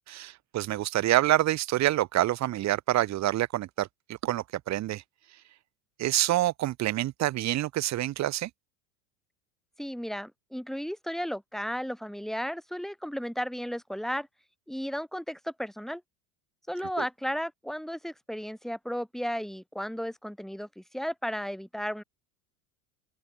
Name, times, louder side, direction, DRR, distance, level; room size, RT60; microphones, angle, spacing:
voice 1, 0.1-3.9 4.2-5.0 6.0-8.5, right 14 dB, 40° right, 0.9 m, -27 dB
voice 2, 9.8-14.3 14.7-16.0 16.7-22.0, equal, ahead, 3.3 m, -34 dB
open air
hypercardioid pair, 90°, 42 cm